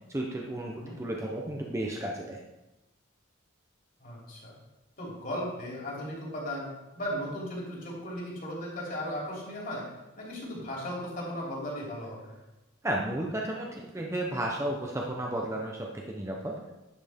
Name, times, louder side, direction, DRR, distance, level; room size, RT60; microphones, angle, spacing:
voice 1, 0.1-2.4 12.8-16.5, right 1 dB, 15° right, -1 dB, 0.7 m, -33 dB
voice 2, 4.0-4.5 5.0-9.8 10.2-12.3, equal, 45° left, -5 dB, 3.0 m, -36 dB
10.5 x 5.7 x 3.6 m, 1.0 s
head